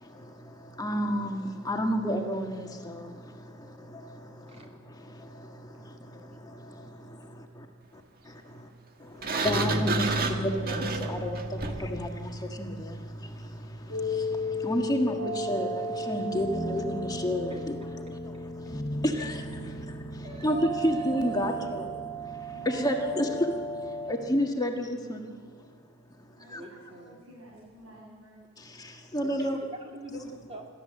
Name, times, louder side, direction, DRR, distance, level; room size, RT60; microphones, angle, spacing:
voice 1, 0.0-7.7 7.9-8.7 9.0-17.8 18.2-19.4 19.7-23.6 23.9-25.3 26.5-26.6 28.6-29.6 30.1-30.2, equal, 20° left, 3 dB, 1.7 m, -32 dB
voice 2, 7.4-7.8 8.4-8.6 22.5-23.5 26.4-28.4, right 1 dB, 70° right, -4 dB, 6.2 m, -52 dB
Sliding door, 9.2-12.0, right 3 dB, 45° right, 1.6 m, -31 dB
sound 1, 9.4-24.2, equal, 45° left, 2.3 m, -35 dB
voice 3, 20.2-21.8 26.5-27.2 29.2-30.7, equal, 30° right, 1 dB, 3.2 m, -44 dB
28.0 x 13.0 x 7.7 m, 2.1 s
head